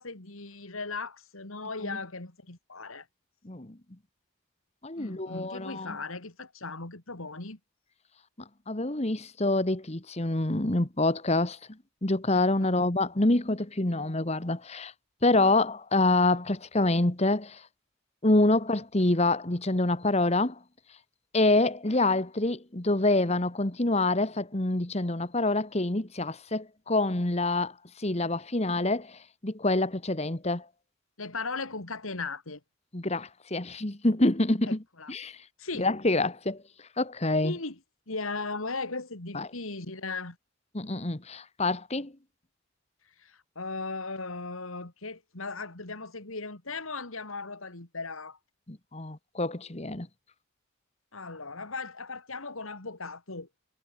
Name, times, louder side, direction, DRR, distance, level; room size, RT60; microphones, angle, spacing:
voice 1, 0.0-3.1 5.0-7.6 12.6-12.9 31.2-32.6 34.6-35.1 35.6-35.9 37.4-37.8 38.1-40.4 43.2-48.4 51.1-53.5, left 3 dB, 80° left, 3.0 m, -37 dB
voice 2, 4.8-6.0 8.7-11.6 12.0-14.9 15.2-17.6 18.2-20.5 21.3-27.7 28.0-29.1 29.4-30.6 32.9-34.8 35.1-35.4 35.8-36.6 37.0-37.5 39.3-39.5 40.7-42.1 48.7-50.1, left 2 dB, 30° left, 1.5 m, -26 dB
head